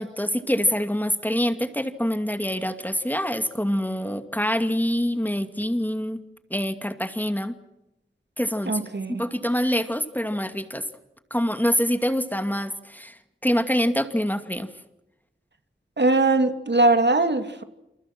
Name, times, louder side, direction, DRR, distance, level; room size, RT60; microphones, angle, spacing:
voice 1, 0.0-6.2 6.5-7.5 8.4-8.8 9.2-10.8 11.3-14.7, equal, 10° left, 9 dB, 2.5 m, -25 dB
voice 2, 8.7-9.1 16.0-17.6, right 2 dB, 65° right, 8 dB, 2.8 m, -20 dB
29.0 x 29.0 x 6.2 m, 0.91 s
wide cardioid pair, 70°, 19 cm